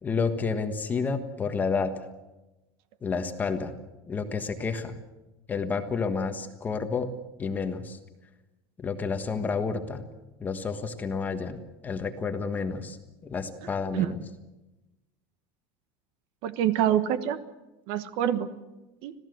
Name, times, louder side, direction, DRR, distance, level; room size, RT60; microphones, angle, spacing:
voice 1, 0.0-1.9 3.0-3.7 4.1-4.9 5.5-7.1 7.4-8.0 8.8-10.0 10.4-13.0 13.2-14.2, left 5 dB, 15° left, 7 dB, 1.4 m, -30 dB
voice 2, 13.6-14.1 16.4-17.4 17.9-18.5 19.0-19.1, right 10 dB, 45° right, 12 dB, 1.2 m, -26 dB
26.5 x 16.5 x 7.9 m, 1.0 s
supercardioid pair, 180°, 12 cm